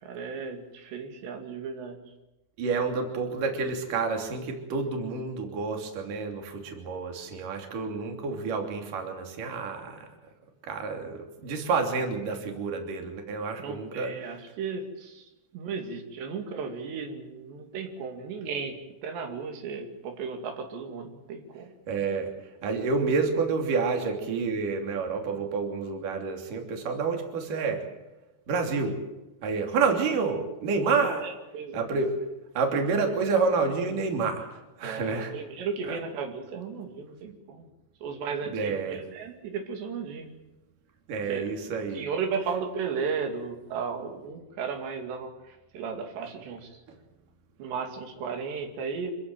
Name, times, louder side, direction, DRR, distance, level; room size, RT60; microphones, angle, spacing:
voice 1, 0.0-2.0 13.6-21.7 31.2-31.8 34.8-37.7 38.0-40.3 41.2-41.6 41.9-46.8 47.6-49.1, right 5 dB, 85° right, 4 dB, 4.7 m, -35 dB
voice 2, 2.6-10.1 10.7-14.1 21.9-22.3 22.6-27.9 28.5-29.0 29.4-31.2 31.7-32.1 32.5-34.5 34.8-35.3 35.9-36.0 38.5-39.0 41.1-42.0, right 4 dB, 55° right, 3 dB, 4.5 m, -29 dB
26.0 x 16.0 x 9.1 m, 1.0 s
omnidirectional pair, 4.8 m